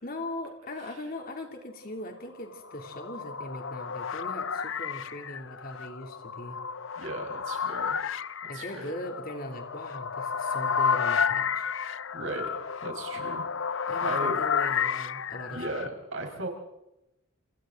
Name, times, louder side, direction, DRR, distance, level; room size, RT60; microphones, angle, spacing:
voice 1, 0.0-6.6 8.5-11.6 13.9-15.9, left 1 dB, 45° left, 3 dB, 3.0 m, -40 dB
sound 1, 2.5-15.9, left 6 dB, 65° left, 0.7 m, -31 dB
voice 2, 7.0-8.0 8.5-8.9 12.1-12.5 12.8-14.4 15.5-16.5, right 2 dB, 70° right, 2 dB, 4.9 m, -37 dB
29.0 x 28.5 x 3.9 m, 0.93 s
head